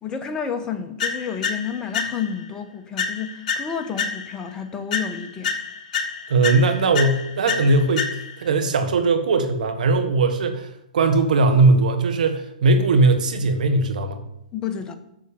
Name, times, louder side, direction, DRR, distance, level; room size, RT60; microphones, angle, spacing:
voice 1, 0.0-5.6 14.5-14.9, left 7 dB, 15° left, 1.0 m, -30 dB
sound 1, 1.0-2.5 3.0-4.5 4.9-8.5, left 5 dB, 55° left, 1.3 m, -29 dB
voice 2, 6.3-8.1 8.4-10.7 10.9-14.2, right 3 dB, 70° right, 1.4 m, -19 dB
7.6 x 6.5 x 7.0 m
hypercardioid pair, 125°, 5 cm